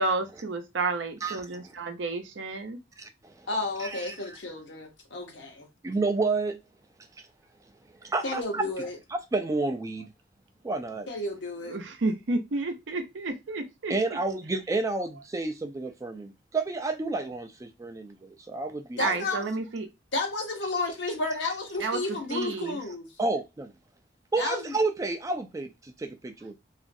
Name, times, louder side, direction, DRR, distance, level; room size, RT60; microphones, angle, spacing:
voice 1, 0.0-2.8 11.7-13.9 19.0-19.9 21.8-22.0 22.3-22.8, right 3 dB, 75° right, 0.6 m, -31 dB
voice 2, 3.0-3.3 3.8-4.4 5.8-6.6 8.0-8.6 9.1-10.1 10.6-11.1 13.9-19.2 23.2-23.7 24.3-26.6, right 3 dB, 20° right, 0.3 m, -30 dB
voice 3, 3.5-5.7 8.2-9.0 11.1-11.8 19.0-19.5 20.1-23.1 24.4-24.7, left 2 dB, 70° left, 0.9 m, -32 dB
3.0 x 2.5 x 2.6 m
head